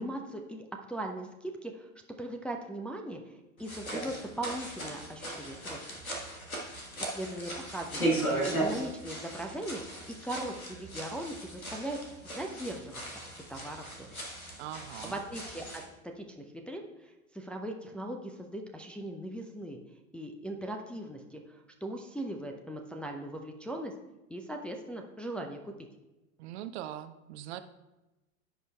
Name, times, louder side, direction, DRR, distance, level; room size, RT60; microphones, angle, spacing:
voice 1, 0.0-1.9 2.2-3.2 3.6-5.8 6.6-8.1 8.5-10.0 10.2-12.0 12.2-13.0 13.5-14.3 15.0-19.8 20.1-23.9 24.3-25.7, right 1 dB, 5° left, 1 dB, 0.5 m, -39 dB
sound 1, 3.6-15.9, right 1 dB, 90° left, 1.5 m, -37 dB
voice 2, 14.6-15.2 26.4-27.6, right 12 dB, 50° right, 10 dB, 0.6 m, -41 dB
15.0 x 5.2 x 2.3 m, 1.0 s
figure-of-eight pair, 80°, 41 cm